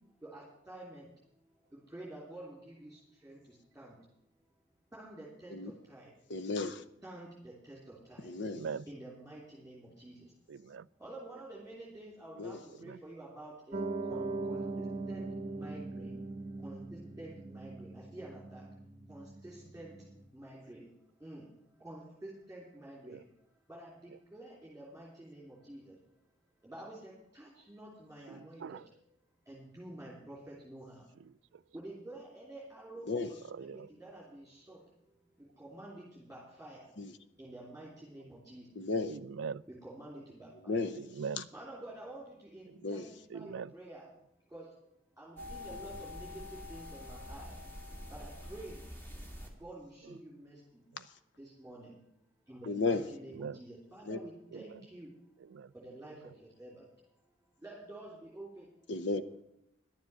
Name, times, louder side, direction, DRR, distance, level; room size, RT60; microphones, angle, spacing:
voice 1, 0.2-1.0 1.9-3.9 4.9-6.1 7.0-8.3 8.9-10.2 11.0-13.8 14.0-16.1 16.6-18.6 19.1-19.9 20.3-20.9 21.2-21.5 21.8-23.2 23.7-25.9 26.6-28.8 29.5-31.0 31.7-34.8 35.6-36.9 37.4-38.7 39.7-40.9 41.5-44.1 44.5-44.7 45.2-47.6 48.1-48.8 49.4-50.6 51.4-51.9 52.5-55.1 55.7-56.2 56.6-56.8 57.6-58.7, right 1 dB, 5° right, -5 dB, 3.2 m, -49 dB
voice 2, 6.3-6.8 8.2-8.6 12.4-12.6 33.1-33.3 37.0-37.1 38.8-39.2 40.7-41.0 41.4-41.5 42.8-43.1 52.7-53.0 54.1-54.2 58.9-59.2, left 3 dB, 60° left, 12 dB, 0.8 m, -33 dB
voice 3, 8.4-8.9 10.5-10.9 12.8-13.0 23.1-23.2 28.3-28.8 33.5-33.9 39.1-39.6 40.9-41.5 42.7-43.0 43.3-43.7 50.9-51.0 53.4-53.6 54.5-54.6 55.5-55.7, right 6 dB, 70° right, 18 dB, 0.3 m, -42 dB
Piano, 13.7-20.3, right 3 dB, 35° right, 0.8 m, -40 dB
sound 1, 45.4-49.5, left 2 dB, 10° left, 1.8 m, -46 dB
11.5 x 7.4 x 8.9 m, 0.80 s
head